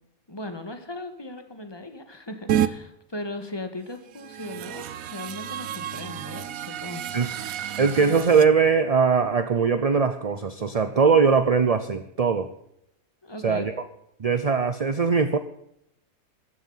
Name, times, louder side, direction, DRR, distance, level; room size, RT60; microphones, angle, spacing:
voice 1, 0.3-7.4 13.2-13.7, left 2 dB, 20° left, 8 dB, 1.7 m, -38 dB
sound 1, 2.5-2.7 4.1-8.5, right 10 dB, 75° right, 1.2 m, -30 dB
voice 2, 7.8-12.5 13.4-13.7 14.2-15.4, right 5 dB, 40° right, 10 dB, 0.6 m, -21 dB
14.5 x 11.0 x 5.7 m, 0.77 s
omnidirectional pair, 1.5 m